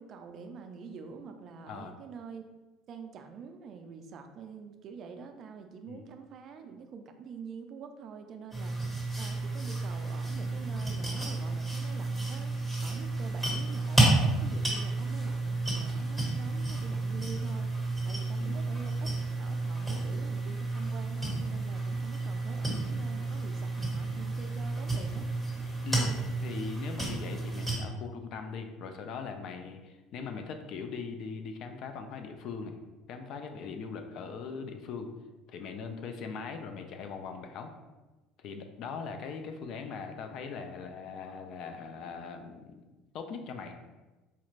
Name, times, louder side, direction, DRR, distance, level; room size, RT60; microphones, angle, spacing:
voice 1, 0.0-2.4 2.9-12.5 12.8-17.7 18.0-25.3, right 6 dB, 45° right, 6 dB, 0.4 m, -46 dB
sound 1, 8.5-27.8, right 2 dB, 10° left, 1.4 m, -31 dB
voice 2, 25.8-26.2 26.4-32.8 33.1-35.1 35.5-37.7 38.4-42.9 43.1-43.8, left 5 dB, 55° left, 6 dB, 0.4 m, -40 dB
4.3 x 2.4 x 3.1 m, 1.2 s
cardioid pair, 140°, 0 cm